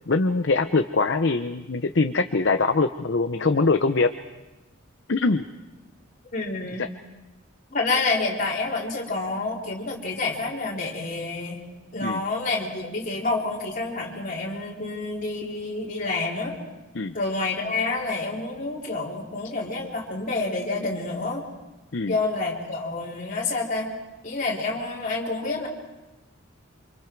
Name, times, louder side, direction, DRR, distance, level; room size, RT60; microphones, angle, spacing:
voice 1, 0.1-4.1 5.1-5.5 6.8-6.9 12.0-12.2 16.9-17.2 21.9-22.2, left 3 dB, 55° left, 8 dB, 0.7 m, -23 dB
voice 2, 6.3-6.8 7.7-11.6 11.9-16.6 17.1-21.4 22.1-23.9 24.2-25.7, left 3 dB, 40° left, -3 dB, 3.9 m, -28 dB
28.0 x 26.0 x 4.7 m, 1.1 s
head